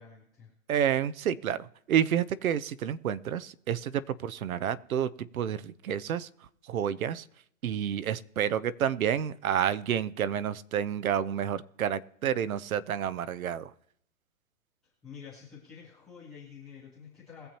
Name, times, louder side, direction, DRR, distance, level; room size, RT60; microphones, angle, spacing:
voice 1, 0.0-0.5 14.8-17.5, left 7 dB, ahead, -12 dB, 0.3 m, -49 dB
voice 2, 0.7-6.3 6.7-7.2 7.6-13.7, right 9 dB, 90° right, 15 dB, 0.8 m, -29 dB
21.0 x 7.1 x 2.9 m, 0.70 s
hypercardioid pair, 150°, 41 cm